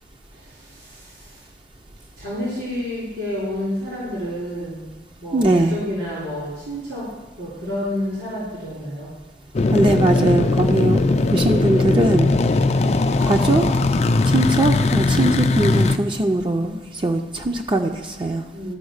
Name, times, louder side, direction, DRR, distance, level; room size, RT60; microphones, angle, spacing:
voice 1, 0.3-1.5 2.2-4.8 5.2-7.1 7.4-9.1 18.5-18.8, left 1 dB, 80° right, -9 dB, 3.7 m, -29 dB
voice 2, 5.3-5.7 9.7-11.0 11.3-12.3 13.2-13.6 14.3-18.4, right 2 dB, 30° right, 3 dB, 0.5 m, -20 dB
sound 1, 9.5-16.0, left 3 dB, 35° left, 0.4 m, -19 dB
12.5 x 4.6 x 6.4 m, 1.1 s
head